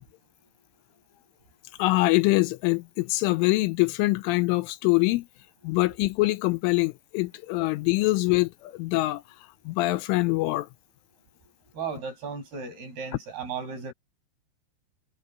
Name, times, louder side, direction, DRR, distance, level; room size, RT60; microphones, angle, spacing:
voice 1, 1.8-5.3 5.6-9.2 9.7-10.7, left 21 dB, 85° left, 3.1 m, -24 dB
voice 2, 11.7-13.9, right 5 dB, 50° right, 8.6 m, -35 dB
omnidirectional pair, 5.8 m